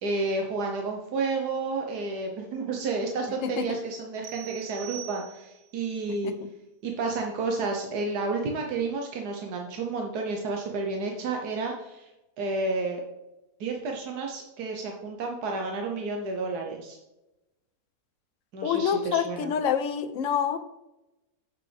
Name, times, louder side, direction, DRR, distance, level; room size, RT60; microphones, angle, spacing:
voice 1, 0.0-6.3 6.8-12.1 12.4-13.0 13.6-17.0 18.5-19.5, right 3 dB, 90° right, 1 dB, 1.5 m, -31 dB
sound 1, 4.2-5.8, right 16 dB, 75° right, 1.2 m, -43 dB
voice 2, 18.6-20.6, left 8 dB, 60° left, 10 dB, 1.0 m, -27 dB
8.9 x 6.2 x 3.3 m, 0.98 s
omnidirectional pair, 1.6 m